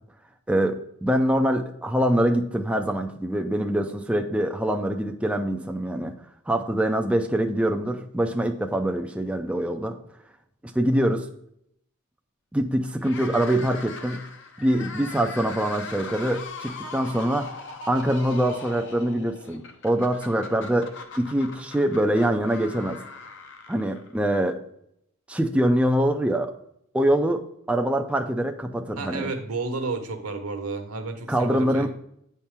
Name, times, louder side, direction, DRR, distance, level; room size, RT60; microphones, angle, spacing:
voice 1, 0.5-6.1 6.5-10.0 10.7-11.3 12.5-14.2 14.6-17.6 17.9-20.9 21.2-23.0 23.7-24.6 25.3-26.5 26.9-29.3 31.3-31.9, right 1 dB, 5° right, 3 dB, 0.4 m, -24 dB
sound 1, 13.0-24.3, left 3 dB, 55° left, 0.8 m, -40 dB
voice 2, 29.0-31.9, right 3 dB, 85° right, 6 dB, 1.0 m, -31 dB
8.9 x 4.3 x 3.5 m, 0.73 s
head